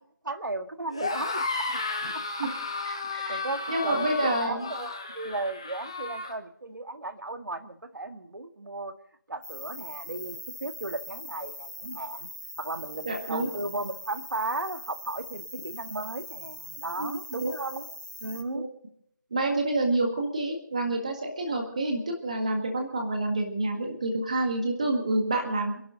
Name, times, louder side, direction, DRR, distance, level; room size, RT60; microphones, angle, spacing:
voice 1, 0.2-1.8 2.1-2.2 3.1-8.9 9.3-12.3 12.6-18.0 18.2-18.7, right 2 dB, 70° right, 8 dB, 1.7 m, -35 dB
sound 1, 0.9-6.3, left 3 dB, 15° left, 0.8 m, -33 dB
voice 2, 2.9-3.4 3.7-4.7 13.1-13.5 17.0-17.5 18.5-18.7 19.3-25.8, right 2 dB, 20° right, 3 dB, 1.7 m, -28 dB
sound 2, 9.4-18.4, left 1 dB, 65° left, 3.3 m, -42 dB
29.0 x 11.0 x 3.9 m, 0.71 s
figure-of-eight pair, 180°, 11 cm